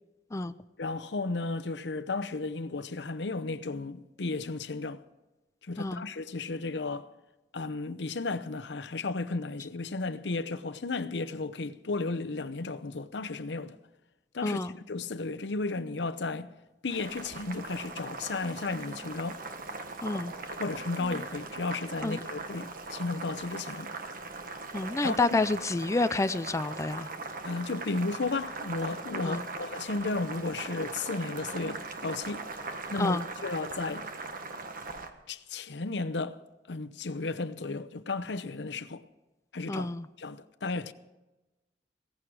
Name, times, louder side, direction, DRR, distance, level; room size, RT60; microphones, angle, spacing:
voice 1, 0.8-5.0 5.6-7.1 7.5-13.8 14.3-16.5 16.8-19.4 20.5-23.9 25.0-25.4 27.4-32.5 32.9-34.1 35.3-36.4 36.7-39.0 39.5-39.9 40.2-40.9, left 3 dB, 85° left, 0.8 m, -34 dB
voice 2, 14.4-14.8 20.0-20.3 21.0-21.2 22.0-22.2 24.7-27.1 29.2-29.4 33.0-33.3 39.7-40.1, left 2 dB, 15° left, 0.4 m, -29 dB
Boiling, 16.9-35.1, right 3 dB, 55° right, 1.4 m, -40 dB
17.5 x 15.0 x 4.8 m
head